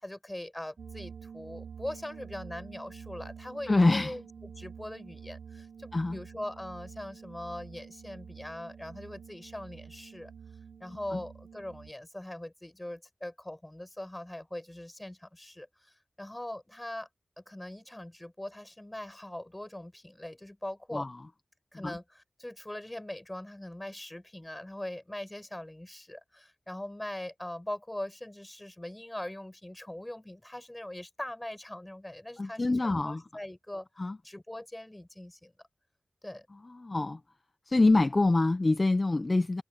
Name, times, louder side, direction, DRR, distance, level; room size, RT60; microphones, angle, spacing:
voice 1, 0.0-4.3 4.6-10.3 10.8-17.1 17.4-21.1 21.7-33.9 34.2-35.5 36.2-36.5, left 1 dB, 15° left, 5.4 m, -41 dB
sound 1, 0.8-11.9, right 6 dB, 80° right, 0.7 m, -47 dB
voice 2, 3.7-4.2 5.9-6.2 11.1-11.2 20.9-21.1 21.8-22.0 32.4-33.2 34.0-34.2 36.8-37.2 37.7-39.6, left 2 dB, 35° left, 0.6 m, -25 dB
cardioid pair, 60°, 0 cm